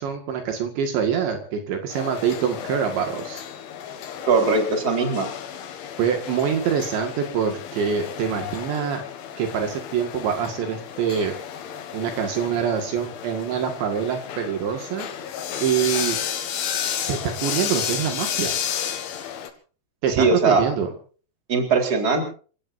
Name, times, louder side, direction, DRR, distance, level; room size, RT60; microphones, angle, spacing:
voice 1, 0.0-3.4 6.0-9.0 9.4-11.3 11.9-15.1 15.6-16.2 17.1-18.6 20.0-20.9, right 7 dB, 70° right, 5 dB, 4.0 m, -25 dB
sound 1, 1.9-19.5, left 9 dB, 75° left, 4.3 m, -32 dB
voice 2, 4.2-5.3 20.1-20.6 21.5-22.3, right 4 dB, 20° right, 3 dB, 3.9 m, -20 dB
28.5 x 17.5 x 2.7 m, 0.40 s
omnidirectional pair, 5.7 m